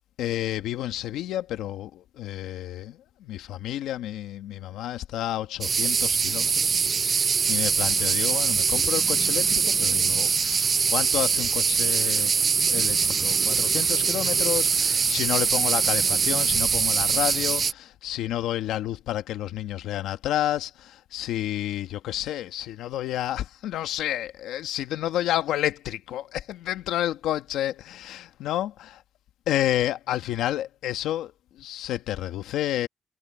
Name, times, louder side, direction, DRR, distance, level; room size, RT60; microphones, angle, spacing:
voice 1, 0.2-6.7 7.0-12.3 12.7-29.0 29.5-32.9, left 12 dB, 85° left, 1.4 m, -30 dB
sound 1, 5.6-17.7, right 5 dB, 40° right, 0.4 m, -23 dB
cardioid pair, 90°, 0 cm